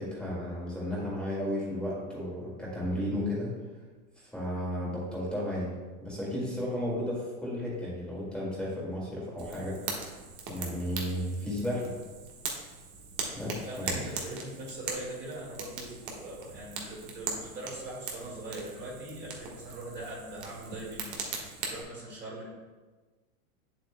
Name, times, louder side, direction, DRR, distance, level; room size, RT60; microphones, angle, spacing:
voice 1, 0.0-3.5 4.2-5.7 6.0-10.0 10.5-11.9 13.3-14.0, left 1 dB, ahead, -6 dB, 2.0 m, -33 dB
Fire, 9.4-21.8, right 5 dB, 40° right, 1.4 m, -40 dB
voice 2, 13.6-22.5, right 1 dB, 25° right, -5 dB, 1.9 m, -41 dB
8.0 x 7.7 x 2.2 m, 1.3 s
hypercardioid pair, 125°, 43 cm